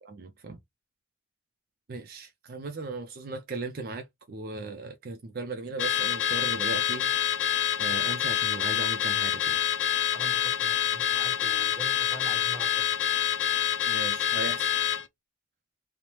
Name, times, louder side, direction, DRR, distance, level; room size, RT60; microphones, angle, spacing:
voice 1, 0.0-0.6 1.9-7.1 7.8-9.6 13.9-14.8, right 3 dB, 50° right, 0.4 m, -37 dB
Car / Alarm, 5.8-15.0, left 10 dB, 70° left, 0.4 m, -27 dB
voice 2, 10.1-12.9, right 1 dB, 10° right, 1.0 m, -44 dB
3.1 x 2.0 x 2.8 m
head